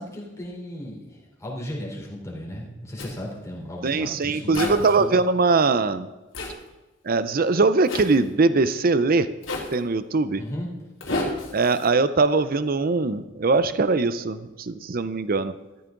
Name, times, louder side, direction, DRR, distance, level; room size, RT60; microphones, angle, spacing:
voice 1, 0.0-5.1 10.4-10.7 11.0-11.3, left 1 dB, 15° left, -3 dB, 3.8 m, -35 dB
Zipper (clothing), 3.0-3.1 4.5-5.0 6.3-6.5 7.9-8.1 9.4-9.8 11.0-11.9, left 2 dB, 80° left, 2.9 m, -30 dB
voice 2, 3.8-6.1 7.1-9.3 9.7-10.4 11.5-15.5, right 3 dB, 50° right, 13 dB, 0.6 m, -21 dB
14.0 x 13.5 x 3.9 m, 1.1 s
head